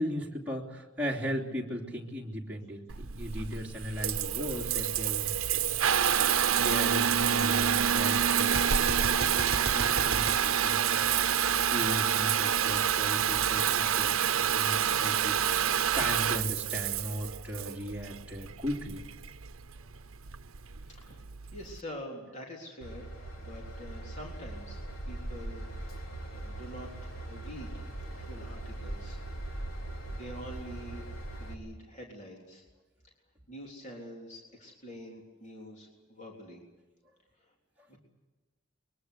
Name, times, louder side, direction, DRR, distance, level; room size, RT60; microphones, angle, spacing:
voice 1, 0.0-5.6 6.5-11.0 11.6-19.0 30.1-30.2, equal, 5° right, -4 dB, 3.2 m, -37 dB
Water tap faucet / Bathtub (filling or washing) / Trickle dribble, 2.9-21.8, right 8 dB, 80° right, 0.8 m, -28 dB
Gunshot gunfire, 8.4-11.5, right 4 dB, 50° right, 1.1 m, -35 dB
voice 2, 20.8-23.1 23.4-24.8 25.1-29.2 30.1-32.6 33.5-36.6 37.4-37.5 37.9-38.0, equal, 35° left, -1 dB, 3.7 m, -46 dB
Train / Engine, 22.8-31.5, right 1 dB, 75° left, 3.7 m, -40 dB
23.0 x 22.5 x 8.2 m, 1.2 s
head